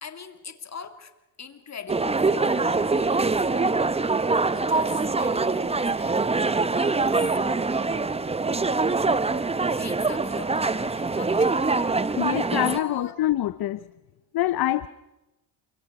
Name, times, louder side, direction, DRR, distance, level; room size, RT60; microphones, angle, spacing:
voice 1, 0.0-1.1 1.4-3.8 4.5-6.4 6.7-7.8 9.7-11.7 12.7-13.2, left 6 dB, 30° left, 8 dB, 2.1 m, -41 dB
sound 1, 1.9-12.8, right 3 dB, 10° right, 0.7 m, -24 dB
voice 2, 12.2-13.8 14.3-14.9, left 14 dB, 50° left, 15 dB, 0.7 m, -25 dB
28.5 x 24.5 x 4.8 m, 1.0 s
cardioid pair, 90°, 50 cm